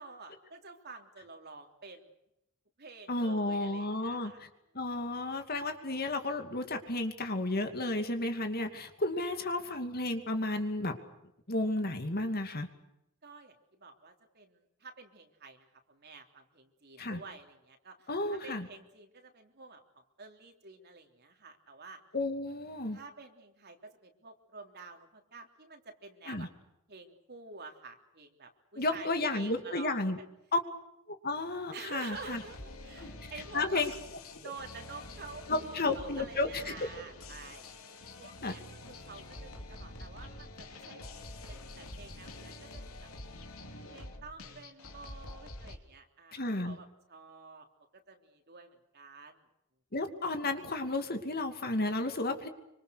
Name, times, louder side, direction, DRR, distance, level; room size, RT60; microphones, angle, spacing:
voice 1, 0.0-2.1 2.8-4.4 9.3-9.8 13.2-22.0 22.9-26.5 26.9-30.2 31.7-33.9 34.4-37.7 38.2-41.1 41.5-43.1 43.9-47.7 47.9-49.4, right 4 dB, 50° right, 3 dB, 3.3 m, -49 dB
voice 2, 3.1-4.5 4.7-11.0 11.5-12.7 17.0-17.2 18.1-18.7 22.1-23.0 26.3-26.5 28.8-30.2 30.5-30.6 31.1-32.4 33.0-33.1 33.5-33.9 34.4-34.5 35.5-36.7 38.4-38.6 46.3-46.8 49.9-52.5, left 2 dB, 45° left, 6 dB, 2.6 m, -32 dB
sound 1, 32.1-45.8, left 2 dB, 75° left, 3.4 m, -47 dB
26.0 x 25.5 x 6.5 m, 0.84 s
head